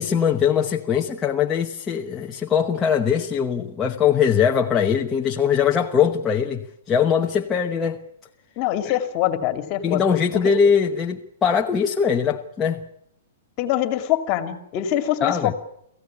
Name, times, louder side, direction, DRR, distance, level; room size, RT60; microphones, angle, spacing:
voice 1, 0.0-8.0 8.8-9.0 9.8-12.8 15.2-15.5, left 7 dB, 15° left, 1.0 m, -21 dB
voice 2, 8.6-10.0 10.3-10.4 13.6-15.5, left 12 dB, 35° left, 2.4 m, -24 dB
24.0 x 15.5 x 9.8 m
hypercardioid pair, 160°, 0 cm